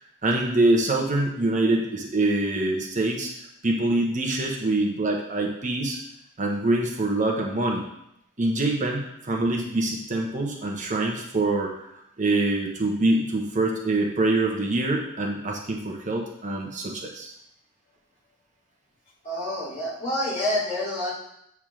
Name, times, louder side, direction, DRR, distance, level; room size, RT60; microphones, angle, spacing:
voice 1, 0.2-3.3 3.6-6.0 6.4-7.8 8.4-11.8 12.2-17.3, right 2 dB, 40° right, 0 dB, 1.0 m, -25 dB
voice 2, 19.2-21.1, left 1 dB, 35° left, -9 dB, 3.3 m, -27 dB
8.7 x 3.7 x 6.2 m, 0.76 s
head